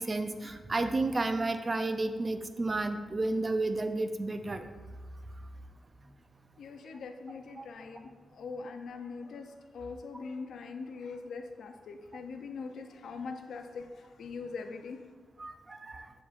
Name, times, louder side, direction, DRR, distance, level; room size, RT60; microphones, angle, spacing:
voice 1, 0.0-4.7 7.6-7.7 15.4-16.1, right 2 dB, 30° right, 8 dB, 0.4 m, -32 dB
voice 2, 6.6-8.1 8.4-13.9 14.2-15.0, left 4 dB, 80° left, 6 dB, 0.5 m, -42 dB
7.1 x 7.0 x 2.5 m, 1.4 s
wide cardioid pair, 120°, 0 cm